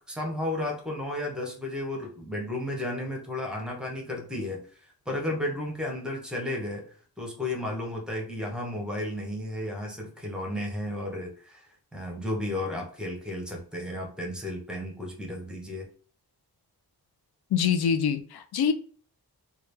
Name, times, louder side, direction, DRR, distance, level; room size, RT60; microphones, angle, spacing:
voice 1, 0.1-4.7 5.1-6.8 7.2-11.7 11.9-15.9, left 1 dB, ahead, 0.7 m, -33 dB
voice 2, 17.5-18.7, left 7 dB, 75° left, 0.5 m, -25 dB
3.1 x 2.3 x 3.2 m
wide cardioid pair, 175°, 38 cm